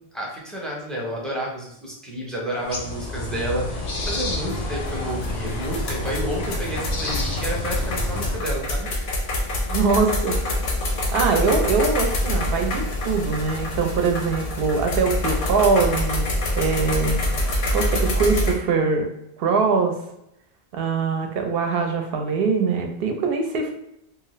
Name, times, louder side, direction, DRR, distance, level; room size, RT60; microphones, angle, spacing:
voice 1, 0.1-9.0, right 1 dB, ahead, -3 dB, 0.5 m, -30 dB
sound 1, 2.6-8.4, left 2 dB, 50° left, 0.5 m, -29 dB
sound 2, 4.4-18.5, left 1 dB, 80° left, 0.9 m, -26 dB
voice 2, 9.7-10.4 11.1-17.2 17.7-19.1 19.4-20.0 20.7-23.7, right 4 dB, 70° right, 4 dB, 0.8 m, -22 dB
2.7 x 2.4 x 3.0 m, 0.82 s
omnidirectional pair, 1.0 m